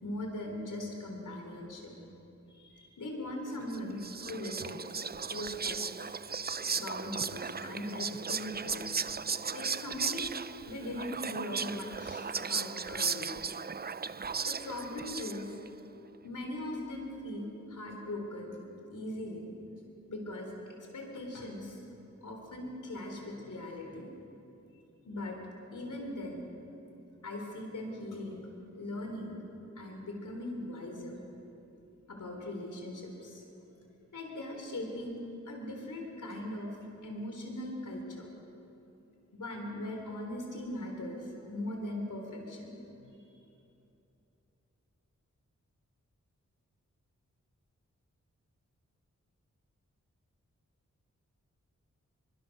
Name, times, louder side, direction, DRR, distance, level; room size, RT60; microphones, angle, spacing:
voice 1, 0.0-1.9 2.5-4.9 5.3-6.1 6.8-8.8 9.5-10.4 10.6-13.4 14.4-15.5 16.2-18.6 18.9-19.5 20.1-21.8 22.2-24.1 25.0-25.4 25.7-26.5 27.2-28.5 28.7-29.4 29.8-31.2 32.1-33.4 34.1-35.2 35.5-36.8 37.0-38.3 39.3-42.8 43.3-43.4, left 1 dB, 85° left, 1 dB, 3.9 m, -40 dB
Whispering, 3.7-15.7, right 5 dB, 30° right, 0.5 m, -36 dB
28.0 x 23.0 x 6.7 m, 2.9 s
wide cardioid pair, 85°, 30 cm